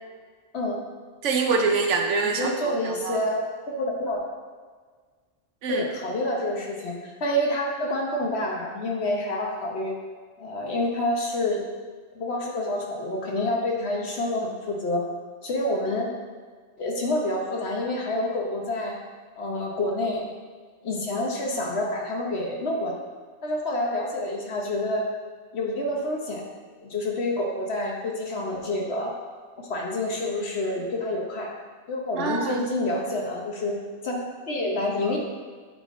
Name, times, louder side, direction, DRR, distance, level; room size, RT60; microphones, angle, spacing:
voice 1, 1.2-3.2 5.6-5.9 32.1-32.6, right 4 dB, 70° right, 3 dB, 1.0 m, -25 dB
voice 2, 2.2-3.5 3.8-4.2 5.7-9.9 10.4-11.6 12.1-15.0 15.4-16.1 16.8-18.9 19.4-20.3 20.8-23.0 23.4-25.1 25.5-26.4 26.8-29.1 29.7-31.5 31.9-33.7 34.0-34.2 34.5-35.2, left 1 dB, 60° left, -1 dB, 1.2 m, -28 dB
8.8 x 3.7 x 3.7 m, 1.5 s
omnidirectional pair, 1.3 m